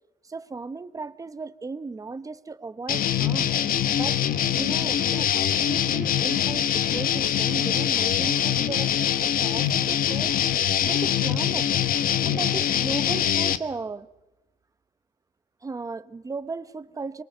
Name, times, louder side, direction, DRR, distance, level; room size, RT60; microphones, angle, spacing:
voice 1, 0.3-3.5 3.9-4.2 4.6-10.3 10.9-11.7 12.2-14.1 15.6-17.2, right 4 dB, 20° right, 1.0 m, -36 dB
sound 1, 2.9-13.6, left 10 dB, 55° left, 1.2 m, -24 dB
22.5 x 22.0 x 6.8 m
cardioid pair, 110°, 17 cm